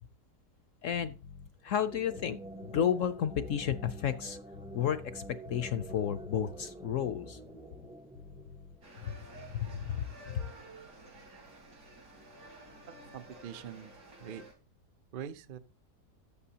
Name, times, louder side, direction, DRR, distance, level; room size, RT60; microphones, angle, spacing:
voice 1, 0.8-1.1 1.6-4.4 4.7-5.2 5.5-7.4 9.0-9.2 9.5-10.1, left 9 dB, 65° left, 0.8 m, -32 dB
sound 1, 0.9-1.5 2.0-5.2 5.5-6.3 6.8-10.0 10.3-10.5, left 6 dB, 85° left, 1.4 m, -51 dB
sound 2, 1.6-9.1, right 2 dB, 10° right, 0.3 m, -47 dB
sound 3, 8.8-14.5, right 2 dB, 80° right, 4.5 m, -52 dB
voice 2, 12.9-13.9 14.2-14.4 15.1-15.6, right 9 dB, 65° right, 0.5 m, -43 dB
13.5 x 9.0 x 2.8 m
omnidirectional pair, 1.7 m